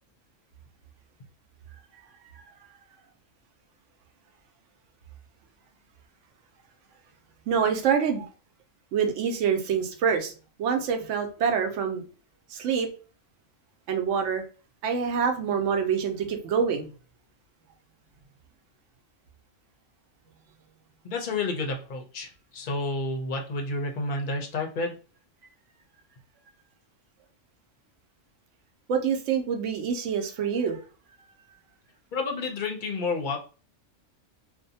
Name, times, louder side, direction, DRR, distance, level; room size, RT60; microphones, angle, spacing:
voice 1, 7.5-8.3 8.9-10.3 10.6-12.0 12.5-12.9 13.9-14.4 14.8-16.9 28.9-30.8, right 7 dB, 75° right, 5 dB, 0.9 m, -26 dB
voice 2, 21.0-24.9 32.1-33.4, left 3 dB, 50° left, 2 dB, 0.6 m, -30 dB
2.6 x 2.1 x 2.7 m, 0.36 s
omnidirectional pair, 1.3 m